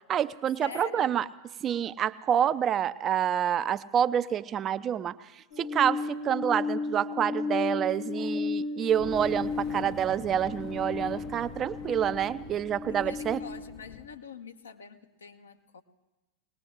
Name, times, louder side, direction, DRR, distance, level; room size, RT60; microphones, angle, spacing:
voice 1, 0.1-1.2 1.6-13.4, right 9 dB, 30° right, 15 dB, 0.6 m, -28 dB
voice 2, 0.6-1.2 6.3-6.5 12.8-15.8, left 7 dB, 70° left, 6 dB, 1.1 m, -45 dB
sound 1, 5.5-13.6, left 4 dB, 50° left, 1.3 m, -34 dB
Fire, 8.9-14.2, left 10 dB, 35° left, 0.7 m, -45 dB
22.5 x 19.0 x 3.3 m, 1.1 s
figure-of-eight pair, 90°, 0 cm